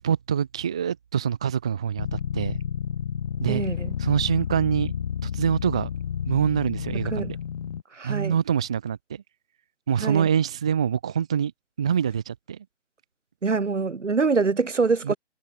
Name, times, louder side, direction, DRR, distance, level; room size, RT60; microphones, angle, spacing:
voice 1, 0.0-2.6 3.4-3.6 4.0-4.9 5.2-5.9 6.3-7.4 8.0-9.2 9.9-11.5 11.8-12.7 15.0-15.1, right 8 dB, 5° right, 0.7 m, -25 dB
sound 1, 2.0-7.8, left 8 dB, 30° left, 3.1 m, -31 dB
voice 2, 3.5-3.9 6.9-7.3 7.9-8.3 10.0-10.3 13.4-15.2, right 4 dB, 80° right, 4.4 m, -25 dB
hypercardioid pair, 170°, 36 cm